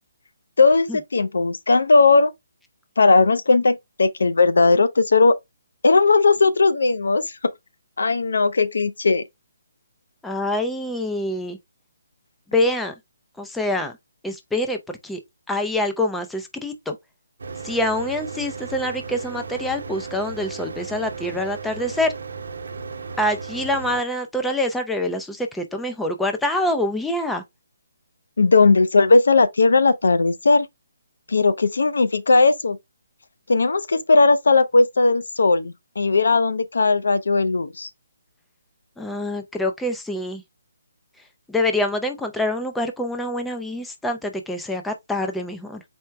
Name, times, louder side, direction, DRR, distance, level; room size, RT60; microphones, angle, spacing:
voice 1, 0.6-2.3 3.0-5.3 5.8-7.2 8.0-9.2 28.4-30.7 31.3-32.8 33.5-37.9, left 3 dB, 80° left, 0.7 m, -17 dB
voice 2, 10.2-11.6 12.5-12.9 13.4-13.9 14.2-15.2 15.5-17.0 17.6-22.1 23.2-27.4 39.0-40.4 41.5-45.8, left 1 dB, 5° left, 0.5 m, -25 dB
Mechanical fan, 17.4-24.0, right 5 dB, 75° right, 0.8 m, -35 dB
4.5 x 2.1 x 4.6 m
hypercardioid pair, 160°, 0 cm